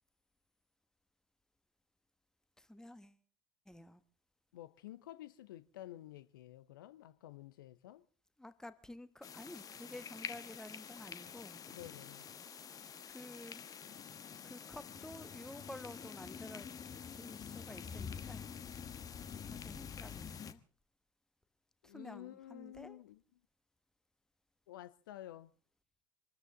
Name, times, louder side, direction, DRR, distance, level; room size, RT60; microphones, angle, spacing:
voice 1, 2.6-3.2 3.6-4.0 8.4-11.6 13.1-13.6 14.4-16.7 17.1-18.5 19.5-20.6 21.8-23.0, left 1 dB, 5° left, 1.3 m, -51 dB
voice 2, 4.5-8.0 11.7-12.3 21.8-23.2 24.7-25.5, left 13 dB, 70° left, 0.7 m, -51 dB
sound 1, 9.2-20.5, left 7 dB, 30° left, 1.2 m, -47 dB
25.5 x 13.5 x 3.8 m
figure-of-eight pair, 70°, 12 cm